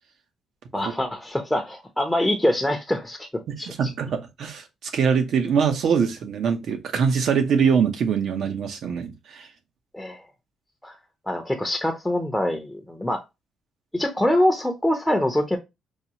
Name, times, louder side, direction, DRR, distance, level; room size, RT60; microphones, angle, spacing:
voice 1, 0.7-3.7 9.9-10.2 10.8-10.9 11.3-13.2 13.9-15.6, left 1 dB, 5° left, 0.7 m, -24 dB
voice 2, 3.7-9.5, right 6 dB, 70° right, 0.8 m, -23 dB
4.7 x 2.3 x 2.9 m
cardioid pair, 90°, 0 cm